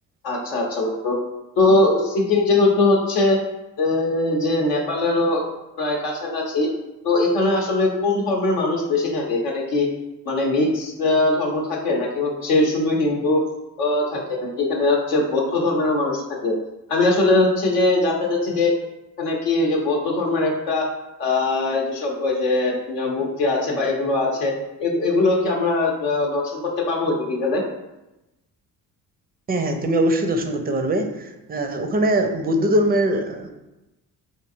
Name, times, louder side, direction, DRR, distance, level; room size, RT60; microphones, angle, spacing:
voice 1, 0.2-1.2 1.6-3.4 3.8-5.5 5.8-6.7 7.0-9.9 10.3-13.4 13.8-16.5 16.9-18.7 19.2-20.9 21.2-24.5 24.8-27.6, left 2 dB, 70° left, -2 dB, 0.8 m, -21 dB
voice 2, 29.5-33.5, right 1 dB, 20° right, 5 dB, 0.4 m, -22 dB
4.4 x 2.6 x 2.5 m, 0.97 s
figure-of-eight pair, 40°, 49 cm